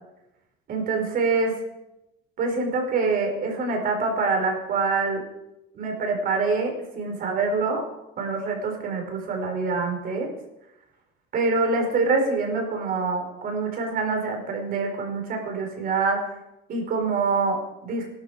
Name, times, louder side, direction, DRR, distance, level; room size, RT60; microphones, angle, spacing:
voice 1, 0.7-1.6 2.4-5.2 5.7-7.9 8.2-10.3 11.3-16.3 16.7-18.1, right 4 dB, 45° right, 3 dB, 4.6 m, -25 dB
17.0 x 12.5 x 5.0 m, 0.91 s
cardioid pair, 140°, 21 cm